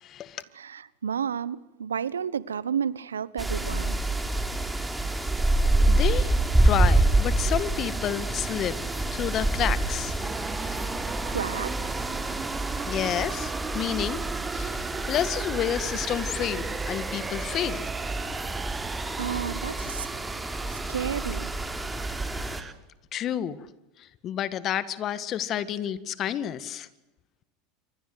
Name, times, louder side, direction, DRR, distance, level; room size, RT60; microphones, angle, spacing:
voice 1, 0.0-0.4 5.9-6.3 6.6-8.8 9.1-10.2 10.5-10.9 12.9-14.2 14.5-17.9 23.1-23.6 24.2-26.9, left 10 dB, 45° left, 1.9 m, -30 dB
voice 2, 0.6-4.0 11.2-11.7 19.2-20.1 20.9-21.5, right 7 dB, 90° right, 1.1 m, -31 dB
sound 1, 3.4-22.6, right 2 dB, 10° right, 3.6 m, -27 dB
sound 2, 10.2-22.7, right 5 dB, 25° right, 1.6 m, -37 dB
27.5 x 24.0 x 8.1 m
hypercardioid pair, 90°, 0 cm